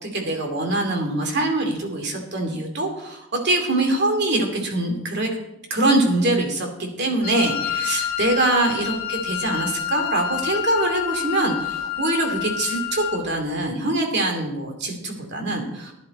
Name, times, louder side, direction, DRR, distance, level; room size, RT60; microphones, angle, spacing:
voice 1, 0.0-5.3 5.7-15.9, right 2 dB, 50° right, 3 dB, 2.6 m, -23 dB
Wind instrument woodwind instrument, 7.2-13.3, left 10 dB, 40° left, 1.6 m, -28 dB
15.0 x 11.5 x 4.3 m, 0.87 s
head